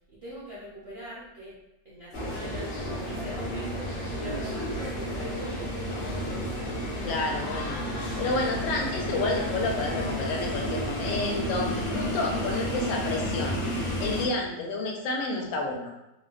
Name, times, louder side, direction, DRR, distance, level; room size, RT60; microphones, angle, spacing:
voice 1, 0.1-1.5 1.8-2.7 3.1-5.8, equal, 60° right, -8 dB, 0.6 m, -43 dB
sound 1, 2.1-14.3, equal, 55° left, 0.6 m, -31 dB
voice 2, 7.0-7.8 8.2-13.6 14.0-15.9, left 3 dB, 85° left, 0 dB, 1.3 m, -30 dB
4.2 x 2.1 x 2.4 m, 0.92 s
omnidirectional pair, 2.0 m